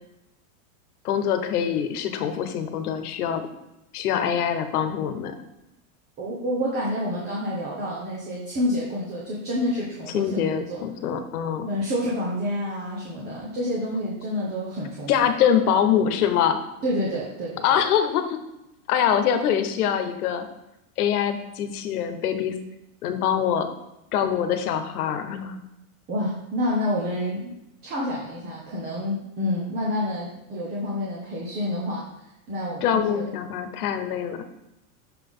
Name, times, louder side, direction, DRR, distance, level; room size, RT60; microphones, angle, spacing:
voice 1, 1.0-3.5 3.9-5.4 10.1-11.7 15.1-16.6 17.6-18.4 18.9-20.5 21.0-22.5 23.0-23.7 24.1-25.6 32.8-34.4, left 8 dB, 80° left, 8 dB, 1.2 m, -24 dB
voice 2, 6.2-10.8 11.6-15.3 16.8-17.8 26.1-27.6 27.8-32.1 32.5-33.3, left 1 dB, 20° right, -5 dB, 1.1 m, -28 dB
6.7 x 5.9 x 3.7 m, 0.90 s
supercardioid pair, 165°, 44 cm